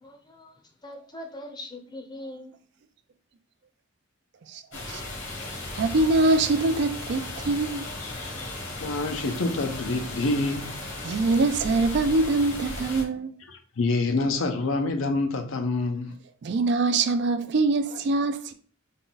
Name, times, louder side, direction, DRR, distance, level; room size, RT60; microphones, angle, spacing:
voice 1, 0.0-2.5, left 1 dB, 20° left, 0.6 m, -41 dB
sound 1, 4.7-13.0, left 2 dB, 65° left, 1.2 m, -36 dB
voice 2, 5.5-7.9 11.0-13.3 16.4-18.5, right 3 dB, 55° right, 0.4 m, -24 dB
voice 3, 8.8-10.8 13.5-16.2, left 2 dB, 80° left, 0.6 m, -27 dB
3.7 x 2.3 x 3.9 m
head